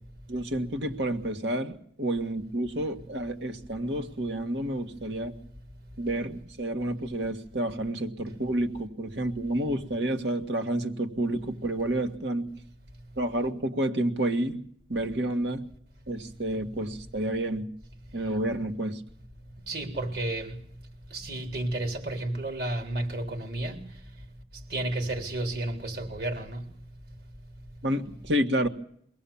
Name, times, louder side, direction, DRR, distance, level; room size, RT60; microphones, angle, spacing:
voice 1, 0.3-5.3 6.0-12.5 13.2-14.6 14.9-15.6 16.1-17.7 18.1-19.0 27.8-28.7, right 1 dB, 90° right, 1.8 m, -29 dB
voice 2, 19.7-20.6 21.1-23.8 24.7-26.6, right 1 dB, 65° right, 3.8 m, -32 dB
23.0 x 18.0 x 7.2 m
head